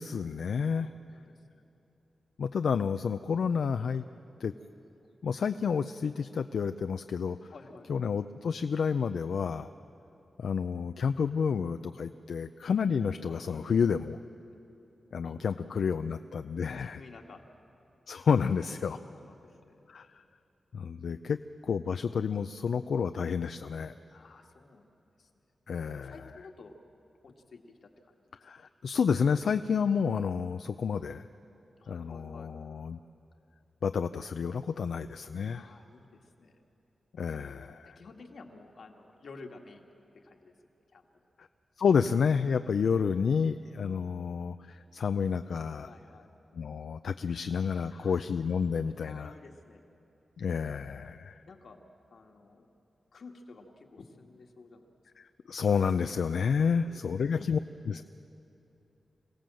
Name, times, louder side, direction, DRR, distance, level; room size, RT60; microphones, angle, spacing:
voice 1, 0.0-0.9 2.4-4.1 4.4-4.5 5.2-7.5 7.9-9.7 10.4-14.2 15.1-17.0 18.1-19.0 19.9-20.2 20.7-21.4 21.6-23.9 25.7-26.1 28.4-31.3 31.9-33.0 33.8-35.7 37.2-38.0 41.4-41.5 41.8-45.9 46.5-49.3 50.4-51.4 55.2-58.0, left 6 dB, 85° left, 9 dB, 0.4 m, -30 dB
voice 2, 0.7-1.6 7.5-7.9 13.2-13.6 15.2-15.9 16.8-17.4 18.6-19.8 24.1-25.3 26.0-26.8 27.2-28.1 31.8-32.5 35.5-36.6 37.9-40.5 40.9-41.1 45.8-46.3 47.9-48.3 48.9-49.8 51.4-51.8 52.1-52.7 53.1-54.9 56.7-57.3, left 3 dB, 65° left, 3 dB, 1.7 m, -52 dB
26.0 x 17.0 x 7.7 m, 3.0 s
wide cardioid pair, 170°, 0 cm